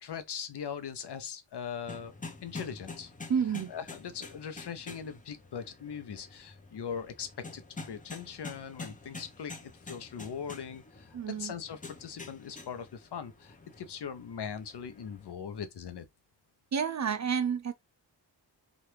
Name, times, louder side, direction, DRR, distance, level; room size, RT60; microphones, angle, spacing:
voice 1, 0.0-2.1 2.4-3.1 3.7-16.1, left 7 dB, 65° left, 0.7 m, -40 dB
sound 1, 1.9-15.3, left 3 dB, 20° left, 0.7 m, -47 dB
voice 2, 3.3-3.7 11.1-11.5 16.7-17.7, right 7 dB, 40° right, 0.4 m, -30 dB
2.8 x 2.5 x 3.2 m
cardioid pair, 65°, 43 cm